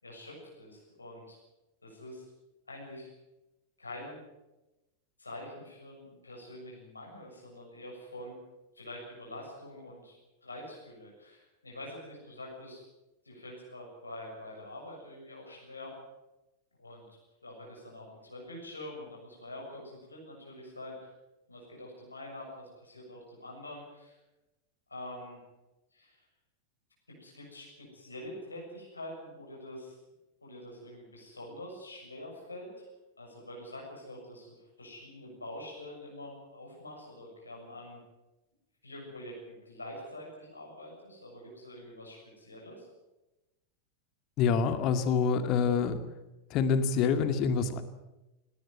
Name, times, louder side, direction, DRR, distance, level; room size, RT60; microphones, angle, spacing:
voice 1, 0.0-1.4 1.8-2.2 2.7-3.1 3.8-4.2 5.2-8.4 8.8-12.8 13.3-15.9 16.8-21.1 21.5-24.1 24.9-25.4 25.9-26.2 27.1-30.0 30.4-32.9 33.2-38.0 38.8-42.9, left 1 dB, 80° left, -1 dB, 7.0 m, -46 dB
voice 2, 44.4-46.0 46.5-47.8, left 6 dB, 40° left, 10 dB, 2.1 m, -26 dB
18.5 x 18.0 x 9.3 m, 1.0 s
figure-of-eight pair, 90°, 0 cm